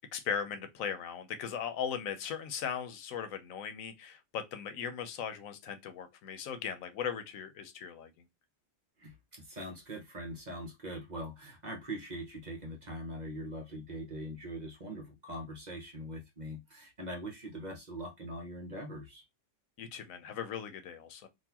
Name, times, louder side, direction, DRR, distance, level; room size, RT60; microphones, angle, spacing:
voice 1, 0.1-8.3 19.8-21.3, left 7 dB, 85° left, 1.1 m, -38 dB
voice 2, 9.0-19.2, equal, 40° right, 0.7 m, -42 dB
3.9 x 2.5 x 2.8 m
omnidirectional pair, 1.4 m